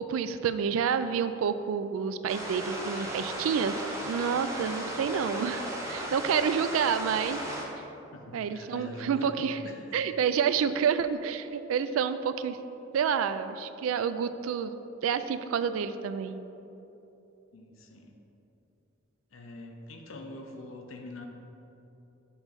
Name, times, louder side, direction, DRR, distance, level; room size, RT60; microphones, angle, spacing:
voice 1, 0.0-7.5 8.3-9.6 9.9-12.6 12.9-14.7 15.0-16.4, right 7 dB, 80° right, 12 dB, 0.3 m, -29 dB
sound 1, 2.3-7.6, right 1 dB, 15° right, 0.7 m, -36 dB
voice 2, 8.1-9.9 17.5-18.1 19.3-21.3, left 2 dB, 75° left, 3 dB, 0.7 m, -44 dB
7.2 x 3.1 x 5.2 m, 3.0 s
head